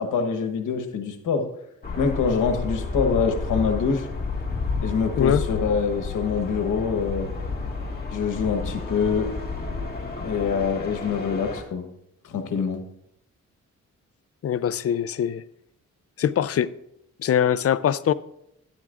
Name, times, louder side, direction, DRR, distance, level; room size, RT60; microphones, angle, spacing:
voice 1, 0.0-1.5 2.0-4.1 4.8-7.3 8.1-9.3 10.2-11.9 12.2-12.8, left 5 dB, 85° left, 7 dB, 1.2 m, -25 dB
sound 1, 1.8-11.6, left 4 dB, 30° left, 1.9 m, -31 dB
voice 2, 14.4-15.4 16.2-16.7 17.2-18.1, left 9 dB, 50° left, 16 dB, 0.4 m, -22 dB
12.0 x 10.5 x 2.5 m, 0.77 s
cardioid pair, 85°, 30 cm